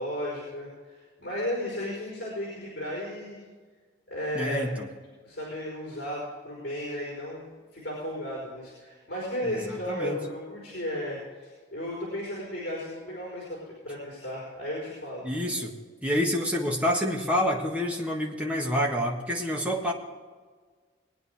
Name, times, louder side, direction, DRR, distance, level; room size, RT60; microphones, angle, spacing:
voice 1, 0.0-3.4 4.1-4.6 5.2-15.3, left 1 dB, 55° left, -6 dB, 4.6 m, -34 dB
voice 2, 4.3-4.9 9.4-10.2 15.2-15.7 16.0-19.9, equal, 5° right, -1 dB, 1.6 m, -28 dB
21.0 x 9.5 x 3.6 m, 1.5 s
head